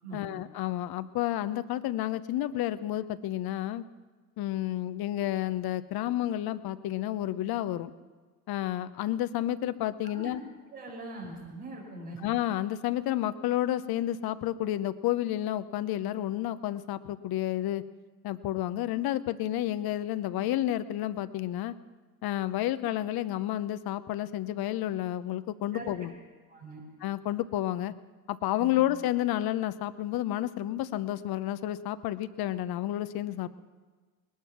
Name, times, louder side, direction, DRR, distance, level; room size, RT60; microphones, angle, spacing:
voice 1, 0.1-3.8 4.4-7.9 8.5-10.4 12.2-17.8 18.2-21.7 22.2-26.1 27.0-27.9 28.3-33.6, left 13 dB, 55° left, 14 dB, 0.8 m, -30 dB
voice 2, 10.7-12.2 25.7-26.1 26.5-26.8 28.6-28.8, right 2 dB, 90° right, -4 dB, 5.5 m, -42 dB
20.0 x 12.0 x 6.0 m, 1.4 s
hypercardioid pair, 65°, 44 cm